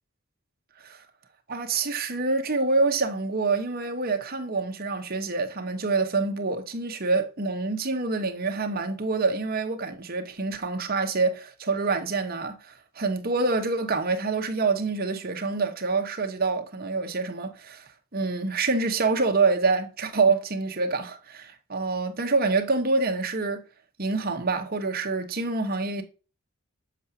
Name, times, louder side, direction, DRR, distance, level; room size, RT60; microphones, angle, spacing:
voice 1, 1.5-23.6 24.0-26.0, right 3 dB, 45° right, 1.0 m, -26 dB
7.2 x 5.8 x 2.7 m
head